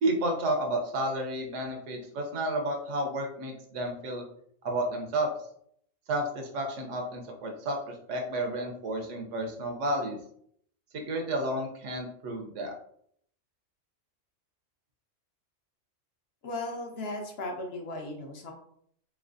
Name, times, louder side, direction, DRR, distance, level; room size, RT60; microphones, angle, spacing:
voice 1, 0.0-4.2 4.6-5.3 6.1-10.2 10.9-12.7, right 1 dB, 75° right, 3 dB, 1.0 m, -31 dB
voice 2, 16.4-18.5, left 2 dB, 60° left, 1 dB, 0.8 m, -36 dB
3.2 x 2.9 x 2.5 m, 0.66 s
omnidirectional pair, 1.3 m